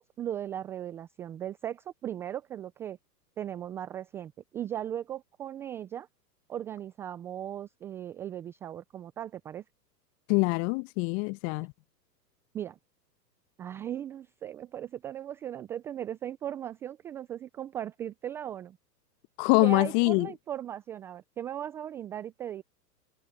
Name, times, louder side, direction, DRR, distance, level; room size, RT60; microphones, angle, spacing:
voice 1, 0.0-3.0 3.4-6.1 6.5-9.6 12.5-12.8 13.6-18.8 19.6-22.6, right 10 dB, 5° right, 0.4 m, -37 dB
voice 2, 10.3-11.7 19.4-20.3, left 33 dB, 35° left, 1.3 m, -24 dB
figure-of-eight pair, 110°, 50 cm